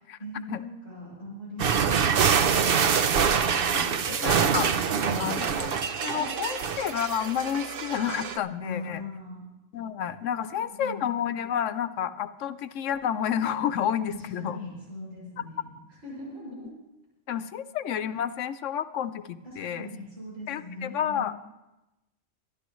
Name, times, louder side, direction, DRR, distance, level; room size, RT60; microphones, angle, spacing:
voice 1, 0.2-4.2 4.9-5.4 6.1-6.6 8.6-9.4 10.4-11.1 14.1-15.7 16.0-16.7 19.4-21.4, left 1 dB, 85° right, -7 dB, 6.7 m, -41 dB
sound 1, 1.6-8.4, right 7 dB, 55° right, 0.7 m, -25 dB
voice 2, 4.2-4.7 5.2-9.0 9.7-14.6 17.3-19.9 20.5-21.4, left 9 dB, 75° left, 12 dB, 1.0 m, -30 dB
25.5 x 12.0 x 3.1 m, 0.98 s
omnidirectional pair, 1.3 m